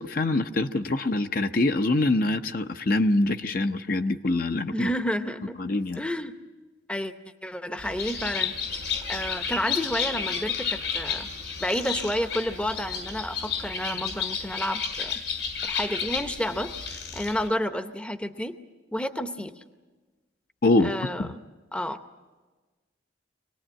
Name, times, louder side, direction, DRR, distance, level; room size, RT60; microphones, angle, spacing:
voice 1, 0.0-4.9 5.6-6.0 20.6-20.9 21.2-21.3, left 2 dB, 50° left, 7 dB, 0.7 m, -24 dB
voice 2, 4.7-5.6 6.0-6.4 6.9-7.1 7.4-8.5 9.1-11.3 11.6-15.2 15.6-16.7 17.1-18.6 18.9-19.6 20.8-21.4 21.7-22.0, equal, 5° left, 9 dB, 0.7 m, -30 dB
Bird, 7.8-17.5, left 6 dB, 80° left, 4.2 m, -32 dB
24.5 x 19.0 x 8.8 m, 1.3 s
head